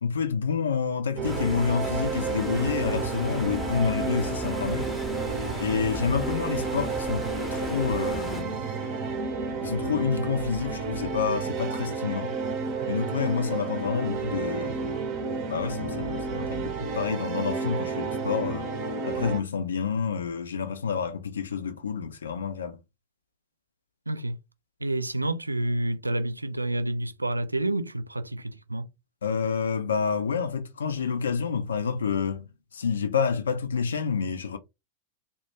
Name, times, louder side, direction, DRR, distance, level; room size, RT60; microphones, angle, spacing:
voice 1, 0.0-4.9 5.6-8.5 9.6-12.3 12.9-14.8 15.5-18.7 19.0-22.8 29.2-34.6, left 6 dB, 70° left, 0.4 m, -28 dB
Stream, 1.2-8.4, left 1 dB, 5° left, 0.7 m, -36 dB
sound 1, 1.2-19.4, right 4 dB, 40° right, 0.6 m, -31 dB
voice 2, 24.1-24.4 24.8-28.9, right 1 dB, 85° right, 0.3 m, -29 dB
2.2 x 2.1 x 2.9 m
figure-of-eight pair, 90°, 0 cm